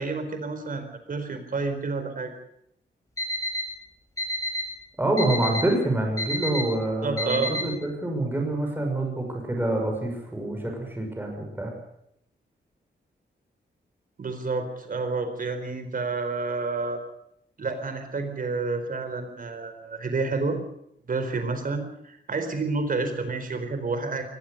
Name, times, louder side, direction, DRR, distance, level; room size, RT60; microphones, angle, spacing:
voice 1, 0.0-2.3 7.0-7.5 14.2-17.0 17.6-20.6 21.1-24.2, right 3 dB, 50° right, 8 dB, 4.3 m, -29 dB
Alarm, 3.2-3.6 4.2-4.6 5.2-5.6 6.2-6.6 7.2-7.6, left 1 dB, 15° left, 6.7 m, -28 dB
voice 2, 5.0-11.7, right 1 dB, 10° right, 2 dB, 6.1 m, -26 dB
23.0 x 19.5 x 6.7 m, 0.74 s
wide cardioid pair, 160°, 19 cm